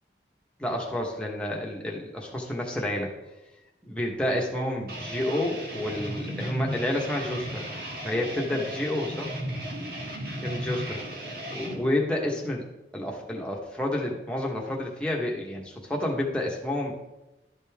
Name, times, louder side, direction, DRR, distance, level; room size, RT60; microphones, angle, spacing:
voice 1, 0.6-3.1 3.9-7.6 8.0-9.3 10.4-11.0 11.5-12.6 12.9-16.9, left 1 dB, 5° left, -2 dB, 1.2 m, -29 dB
sound 1, 4.9-11.8, equal, 55° right, 1.6 m, -35 dB
12.5 x 5.3 x 3.6 m, 0.99 s
head